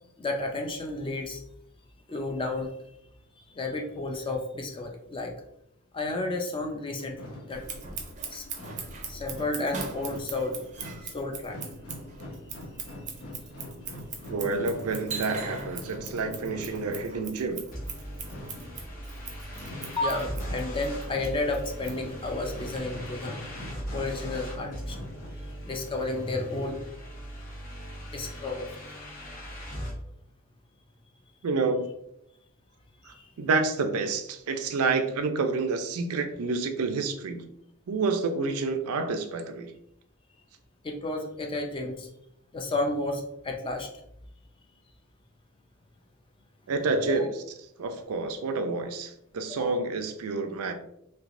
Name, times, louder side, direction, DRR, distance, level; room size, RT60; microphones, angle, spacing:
voice 1, 0.2-1.4 2.1-2.7 3.5-5.3 5.9-7.2 7.5-7.6 8.3-8.4 9.1-10.6 11.0-11.6 20.0-23.4 23.9-25.1 25.6-26.8 28.1-28.7 33.1-33.3 40.8-42.1 42.5-43.9 47.1-47.2 49.6-49.7, left 2 dB, 25° left, 3 dB, 0.4 m, -32 dB
sound 1, 6.6-25.3, left 1 dB, 65° left, 0.8 m, -44 dB
Scissors, 7.5-22.8, right 5 dB, 35° right, 0.5 m, -41 dB
voice 2, 14.3-17.6 31.4-31.9 33.1-37.5 37.9-39.7 46.7-47.3 47.8-50.7, right 3 dB, 85° right, 7 dB, 0.4 m, -29 dB
sound 2, 17.7-29.9, equal, 40° left, 1.0 m, -39 dB
3.2 x 2.8 x 2.5 m, 0.77 s
head